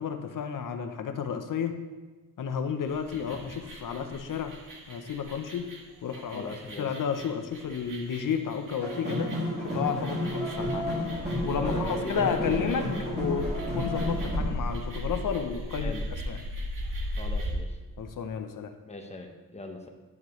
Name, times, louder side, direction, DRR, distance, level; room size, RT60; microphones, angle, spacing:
voice 1, 0.0-1.8 2.4-4.6 4.9-5.7 6.0-10.9 11.4-13.5 13.7-15.9 16.3-16.4 18.0-18.7, left 7 dB, 65° left, 7 dB, 0.8 m, -32 dB
sound 1, 2.9-17.6, equal, 65° right, 1.8 m, -37 dB
voice 2, 6.3-6.9 11.6-13.3 15.8-16.1 17.1-17.8 18.9-19.9, left 2 dB, 20° left, 3 dB, 0.9 m, -40 dB
sound 2, 8.8-14.4, left 1 dB, 30° right, 2.4 m, -31 dB
11.0 x 7.3 x 3.1 m, 1.3 s
wide cardioid pair, 145°, 35 cm